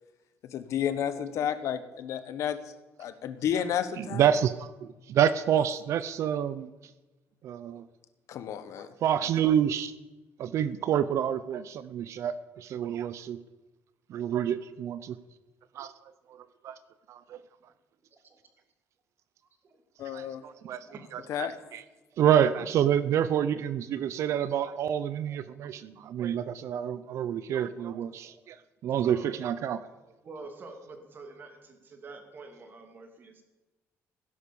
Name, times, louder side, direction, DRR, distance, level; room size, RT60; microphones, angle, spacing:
voice 1, 0.4-2.6 3.0-4.3 8.3-8.9 20.0-20.4 21.3-21.5, left 9 dB, 70° left, 12 dB, 1.3 m, -31 dB
voice 2, 4.0-6.7 7.4-7.8 9.0-9.9 10.4-13.4 14.1-15.2 15.7-15.9 16.3-16.4 16.6-16.7 17.1-17.4 20.0-20.9 21.1-21.8 22.2-28.6 28.8-29.8, right 9 dB, 65° right, 14 dB, 0.7 m, -28 dB
voice 3, 20.4-21.5 23.7-23.8 24.2-24.5 25.2-25.9 28.1-28.4 29.0-29.4 30.2-33.4, right 3 dB, 40° right, 5 dB, 2.6 m, -48 dB
16.0 x 11.5 x 7.1 m, 1.1 s
cardioid pair, 150°, 5 cm